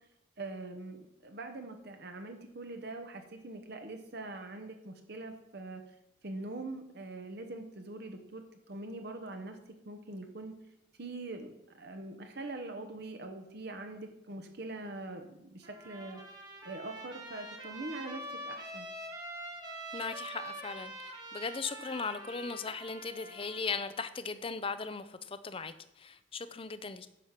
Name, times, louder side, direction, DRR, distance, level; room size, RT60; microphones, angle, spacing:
voice 1, 0.4-5.8 6.2-8.4 8.7-9.6 9.8-10.5 11.0-16.2 16.6-18.9, right 2 dB, 55° right, 5 dB, 1.0 m, -43 dB
Trumpet, 15.6-23.8, right 1 dB, 20° right, 1.4 m, -45 dB
voice 2, 19.9-27.1, left 4 dB, 30° left, 12 dB, 0.5 m, -38 dB
10.0 x 6.4 x 5.8 m, 0.85 s
head